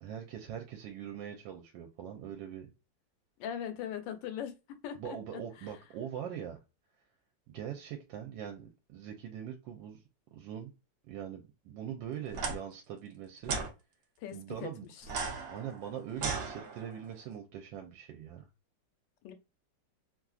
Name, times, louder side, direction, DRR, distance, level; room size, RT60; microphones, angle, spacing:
voice 1, 0.0-2.7 5.0-6.6 7.5-10.0 10.3-10.7 11.1-13.6 14.3-14.9 15.5-18.5, right 9 dB, 85° right, 1.3 m, -42 dB
voice 2, 3.4-5.7 14.2-14.7 15.0-15.1 19.2-19.3, left 9 dB, 85° left, 1.3 m, -40 dB
sound 1, 12.3-12.5 13.4-13.7 15.0-17.1, right 4 dB, 65° right, 1.0 m, -36 dB
3.0 x 2.5 x 2.3 m
omnidirectional pair, 2.0 m